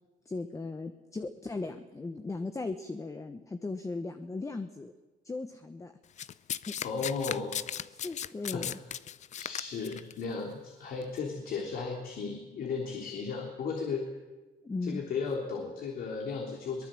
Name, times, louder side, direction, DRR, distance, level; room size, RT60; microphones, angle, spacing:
voice 1, 0.2-4.9 5.2-5.9 6.7-6.8 7.9-8.7 14.6-15.0, left 3 dB, 20° left, 8 dB, 1.2 m, -37 dB
Domestic sounds home sounds, 6.2-10.1 11.0-11.2, left 9 dB, 45° left, 0.6 m, -36 dB
voice 2, 6.8-7.7 8.5-8.7 9.4-14.1 14.8-16.9, left 5 dB, 60° left, 1 dB, 3.5 m, -35 dB
23.0 x 19.0 x 7.8 m, 1.2 s
cardioid pair, 110°, 17 cm